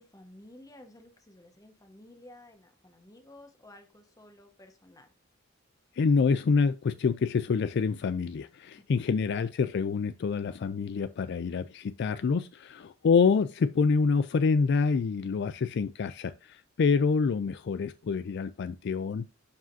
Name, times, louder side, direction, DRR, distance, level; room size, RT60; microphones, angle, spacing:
voice 1, 0.0-5.1 8.8-9.1, left 1 dB, 15° left, 1.2 m, -53 dB
voice 2, 6.0-19.3, left 5 dB, 55° left, 0.3 m, -27 dB
11.5 x 4.9 x 2.6 m
head